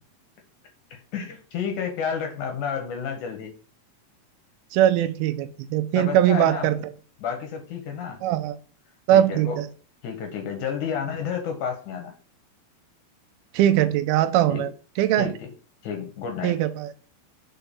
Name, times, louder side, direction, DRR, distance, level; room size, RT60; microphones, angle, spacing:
voice 1, 0.9-3.5 6.0-6.8 7.2-8.2 9.1-9.6 10.0-12.1 14.5-14.7 15.2-15.5 15.8-16.6, left 7 dB, 65° left, 4 dB, 2.2 m, -31 dB
voice 2, 4.7-6.8 8.2-8.6 9.1-9.7 13.5-14.7 15.0-15.3 16.4-16.9, right 12 dB, 85° right, 10 dB, 2.4 m, -21 dB
5.7 x 4.6 x 5.3 m, 0.39 s
omnidirectional pair, 4.4 m